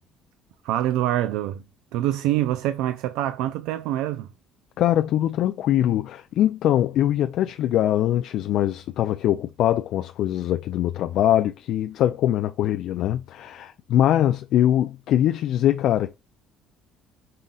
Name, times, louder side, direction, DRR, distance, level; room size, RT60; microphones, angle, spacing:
voice 1, 0.6-1.6 1.9-4.3, right 13 dB, 85° right, 0.3 m, -25 dB
voice 2, 4.8-16.1, left 12 dB, 60° left, 0.3 m, -22 dB
5.5 x 3.8 x 2.3 m
cardioid pair, 140°, 0 cm